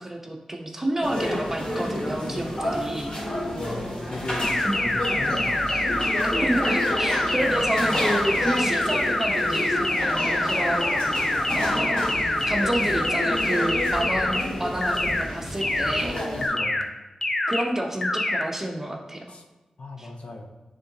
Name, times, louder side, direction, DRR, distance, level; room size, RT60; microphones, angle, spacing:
voice 1, 0.0-3.1 4.6-4.8 6.2-11.1 11.5-12.1 12.5-16.2 17.5-19.2 20.0-20.1, right 1 dB, 20° right, 1 dB, 0.7 m, -29 dB
sound 1, 1.0-16.5, left 1 dB, 55° left, 1.9 m, -30 dB
voice 2, 3.4-4.6 4.8-5.8 16.3-16.9 19.3-19.4 19.8-20.5, left 2 dB, 70° left, 2 dB, 0.8 m, -37 dB
sound 2, 4.4-14.4 14.8-15.2 15.6-16.0 16.4-16.8 17.2-17.6 18.0-18.4, left 1 dB, 25° left, 0.5 m, -25 dB
9.7 x 3.7 x 2.7 m, 1.1 s
wide cardioid pair, 135°, 2 cm